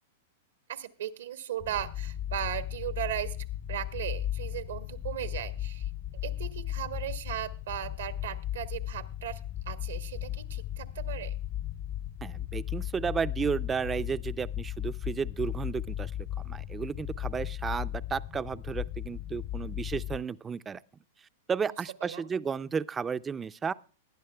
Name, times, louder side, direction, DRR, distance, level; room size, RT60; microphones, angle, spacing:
voice 1, 0.7-3.4 3.7-5.9 6.2-9.4 9.7-11.4 22.0-22.3, right 11 dB, 80° right, 1.1 m, -37 dB
sound 1, 1.6-20.2, left 12 dB, 40° left, 0.5 m, -36 dB
voice 2, 12.2-16.1 16.4-20.8 21.5-23.7, right 6 dB, 15° right, 0.4 m, -33 dB
20.0 x 10.5 x 2.3 m
hypercardioid pair, 125°, 0 cm